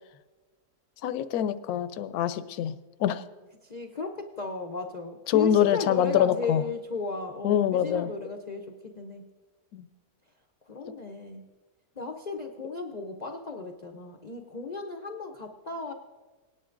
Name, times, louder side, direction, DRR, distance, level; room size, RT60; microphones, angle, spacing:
voice 1, 1.0-2.7 3.0-3.2 5.3-6.6 7.4-8.1 9.7-9.8, left 10 dB, 75° left, 12 dB, 1.1 m, -25 dB
voice 2, 3.6-9.3 10.7-11.5 12.0-15.9, left 4 dB, 60° left, 3 dB, 0.4 m, -35 dB
19.0 x 10.0 x 2.5 m, 1.3 s
omnidirectional pair, 1.7 m